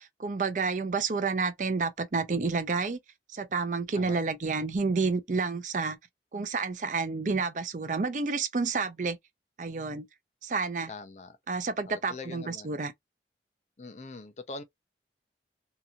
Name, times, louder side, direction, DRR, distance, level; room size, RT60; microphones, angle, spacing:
voice 1, 0.0-3.0 3.3-6.0 6.3-9.2 9.6-10.1 10.4-10.9 11.5-12.9, right 4 dB, 45° right, 0.5 m, -30 dB
voice 2, 10.9-11.4 11.9-12.8 13.8-14.6, left 3 dB, 40° left, 0.4 m, -43 dB
2.8 x 2.5 x 2.3 m
head